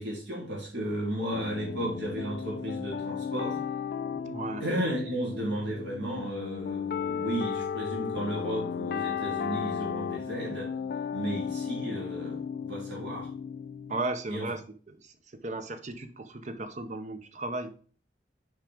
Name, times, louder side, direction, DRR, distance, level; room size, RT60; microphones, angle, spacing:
voice 1, 0.0-3.6 4.6-10.7 11.1-13.3 14.3-14.5, right 1 dB, 80° right, -3 dB, 3.3 m, -34 dB
sound 1, 1.3-14.0, left 7 dB, 60° left, 0.3 m, -35 dB
voice 2, 4.2-4.6 13.9-14.6 14.9-15.1 15.4-17.7, right 2 dB, 40° right, 9 dB, 0.7 m, -35 dB
6.4 x 5.0 x 3.4 m, 0.40 s
head